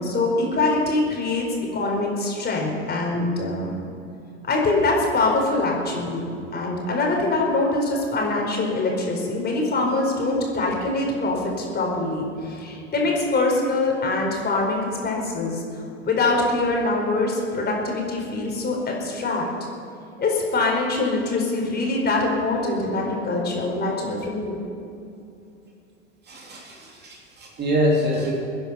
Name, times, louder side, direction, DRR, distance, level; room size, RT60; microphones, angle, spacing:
voice 1, 0.0-1.5 1.7-3.7 4.5-15.6 16.0-19.4 20.2-24.6, left 2 dB, 25° left, 0 dB, 4.6 m, -24 dB
voice 2, 26.3-28.4, equal, 25° right, -1 dB, 2.9 m, -25 dB
22.5 x 10.5 x 5.7 m, 2.7 s
hypercardioid pair, 90°, 37 cm